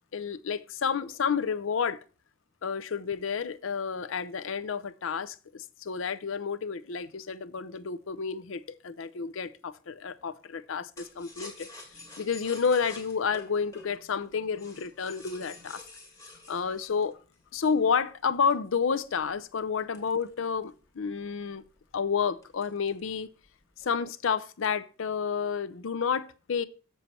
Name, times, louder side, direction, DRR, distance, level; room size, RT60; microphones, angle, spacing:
voice 1, 0.1-2.0 2.6-11.7 12.2-15.8 16.5-17.2 17.5-21.6 21.9-23.3 23.8-26.7, left 6 dB, 65° left, 0.5 m, -30 dB
sound 1, 11.0-17.9 18.4-20.9 21.2-21.3 21.6-22.0 22.4-23.1 23.4-24.0, left 2 dB, 15° left, 1.4 m, -49 dB
7.2 x 6.9 x 4.3 m
head